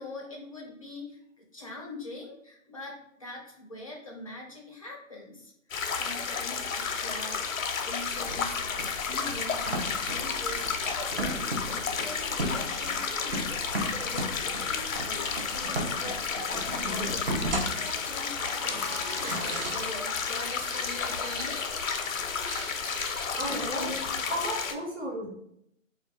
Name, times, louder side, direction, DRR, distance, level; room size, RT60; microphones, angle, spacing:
voice 1, 0.0-5.5 5.9-7.4 7.8-9.7 10.0-11.3 11.7-13.6 14.0-16.2 16.5-21.6, left 2 dB, 30° left, -2 dB, 0.4 m, -43 dB
sound 1, 5.7-24.7, left 5 dB, 85° left, 0.6 m, -32 dB
sound 2, 8.1-24.1, right 1 dB, 45° right, 0.6 m, -37 dB
voice 2, 23.4-23.9 24.3-25.3, right 1 dB, 25° right, -5 dB, 0.9 m, -33 dB
2.4 x 2.1 x 3.5 m, 0.73 s
hypercardioid pair, 155°, 39 cm